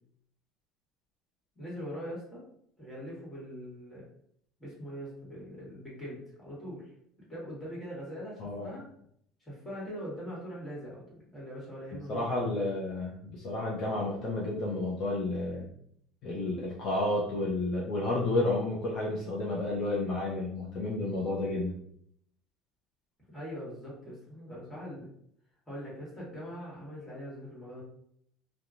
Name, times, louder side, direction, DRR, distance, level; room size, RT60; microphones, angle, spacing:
voice 1, 1.5-2.4 2.8-4.1 4.6-6.9 7.2-8.9 9.4-12.5 23.3-25.1 25.7-27.8, equal, 10° left, -6 dB, 1.4 m, -42 dB
voice 2, 8.4-8.7 12.1-15.7 16.2-21.7, left 2 dB, 50° left, -4 dB, 0.6 m, -31 dB
3.0 x 2.2 x 2.5 m, 0.68 s
cardioid pair, 140°, 0 cm